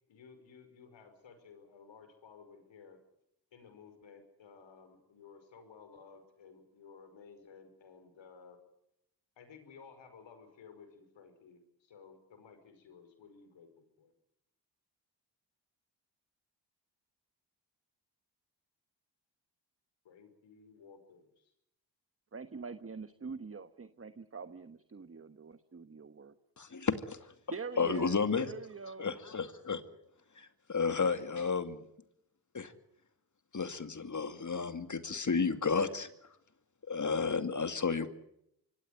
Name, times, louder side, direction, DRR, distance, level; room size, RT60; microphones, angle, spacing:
voice 1, 0.1-3.0 3.5-8.6 9.4-14.1 20.0-21.5, left 5 dB, 80° left, 8 dB, 5.3 m, -56 dB
voice 2, 22.3-26.3 27.5-29.1, right 5 dB, 30° right, 10 dB, 1.3 m, -45 dB
voice 3, 26.6-27.3 27.8-28.5 29.0-29.8 30.4-31.8 32.5-32.7 33.5-36.3 36.9-38.1, left 5 dB, 40° left, 9 dB, 2.4 m, -32 dB
25.0 x 16.5 x 9.5 m, 0.78 s
supercardioid pair, 50°, 44 cm